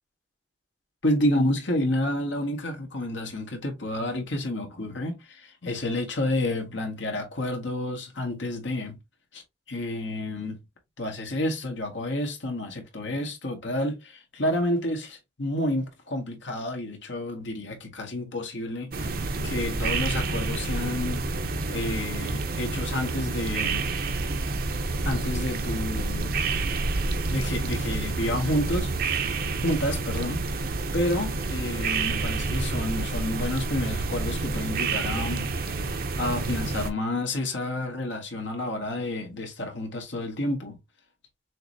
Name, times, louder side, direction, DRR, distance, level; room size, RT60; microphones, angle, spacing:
voice 1, 1.0-9.0 9.3-9.4 9.7-10.6 11.0-21.2 21.7-23.9 25.0-26.3 27.3-29.4 29.6-30.4 30.9-35.5 36.2-40.8, left 1 dB, 85° left, 1.7 m, -30 dB
sound 1, 18.9-36.9, right 3 dB, 50° right, 0.7 m, -29 dB
6.4 x 3.1 x 2.7 m
head